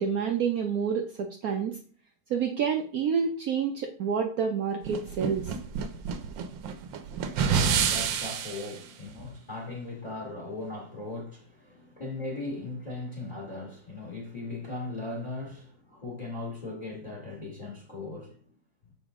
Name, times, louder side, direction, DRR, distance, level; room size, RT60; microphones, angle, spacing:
voice 1, 0.0-1.8 2.3-5.5, right 6 dB, 65° right, 1.0 m, -28 dB
sound 1, 4.8-8.7, right 7 dB, 85° right, 1.4 m, -28 dB
voice 2, 7.1-18.3, left 2 dB, 25° left, 1.7 m, -38 dB
7.0 x 5.1 x 3.6 m
omnidirectional pair, 2.0 m